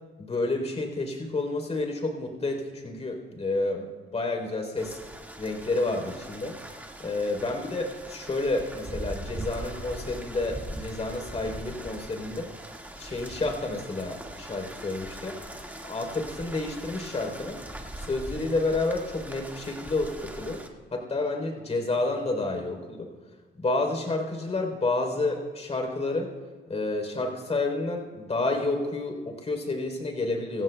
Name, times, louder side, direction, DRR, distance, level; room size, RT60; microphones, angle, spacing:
voice 1, 0.2-5.0 5.4-6.6 7.0-12.5 13.0-15.4 15.8-17.6 18.0-20.6 20.9-23.1 23.6-26.3 26.7-30.6, left 2 dB, 30° left, 2 dB, 3.7 m, -30 dB
sound 1, 4.8-20.7, right 1 dB, 10° right, 1.9 m, -41 dB
25.0 x 16.5 x 2.3 m, 1.3 s
cardioid pair, 90°, 20 cm